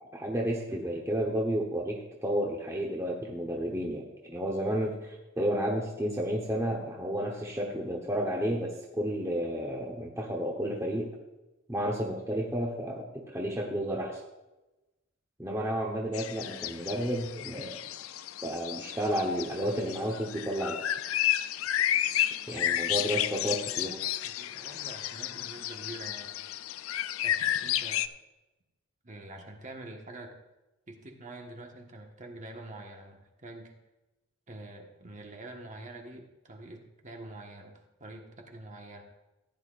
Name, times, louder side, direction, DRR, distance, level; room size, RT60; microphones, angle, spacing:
voice 1, 0.1-11.1 11.7-14.2 15.4-17.7 18.4-20.8 22.5-24.0, equal, 15° right, -1 dB, 1.1 m, -31 dB
sound 1, 16.1-28.1, left 12 dB, 85° left, 0.4 m, -32 dB
voice 2, 23.1-26.3 27.2-28.0 29.0-30.3 30.9-33.7 34.5-39.0, right 2 dB, 40° right, 2 dB, 1.4 m, -46 dB
15.5 x 10.0 x 2.5 m, 1.0 s
head